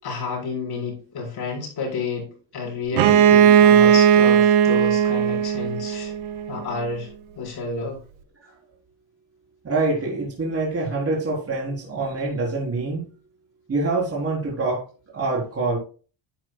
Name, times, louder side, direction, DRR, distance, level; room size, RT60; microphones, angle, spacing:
voice 1, 0.0-6.1 6.5-7.1 7.4-8.0, left 4 dB, 50° left, 5.1 m, -30 dB
Bowed string instrument, 2.9-6.6, right 8 dB, 80° right, 1.2 m, -16 dB
voice 2, 9.6-13.0 13.7-14.8 15.1-15.8, right 3 dB, 30° right, 4.2 m, -25 dB
10.5 x 8.9 x 2.3 m
cardioid pair, 135°, 46 cm